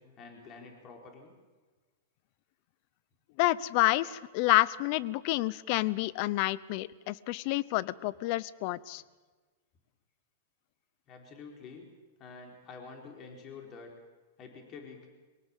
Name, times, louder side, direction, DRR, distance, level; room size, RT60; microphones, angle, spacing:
voice 1, 0.0-1.3 11.1-11.9 12.2-13.9 14.4-15.1, left 4 dB, 35° left, 2 dB, 4.5 m, -48 dB
voice 2, 3.4-9.0, left 18 dB, 50° left, 20 dB, 0.7 m, -29 dB
23.5 x 18.5 x 7.4 m, 1.3 s
hypercardioid pair, 130°, 0 cm